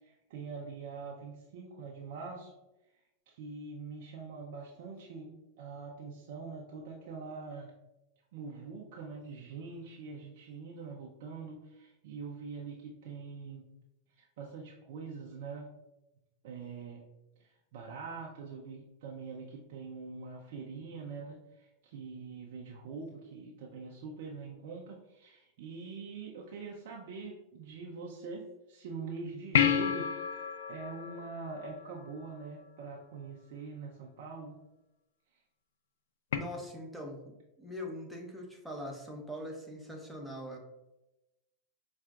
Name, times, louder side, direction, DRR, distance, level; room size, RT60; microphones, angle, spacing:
voice 1, 0.0-2.5 3.3-7.7 8.3-13.6 14.2-15.7 16.4-17.0 17.4-34.6, right 4 dB, 65° right, -2 dB, 0.6 m, -44 dB
sound 1, 29.5-32.3 36.3-36.4, left 8 dB, 75° left, 0.4 m, -30 dB
voice 2, 36.3-40.6, left 1 dB, ahead, -1 dB, 0.9 m, -42 dB
5.6 x 2.5 x 2.4 m, 0.93 s
hypercardioid pair, 105°, 0 cm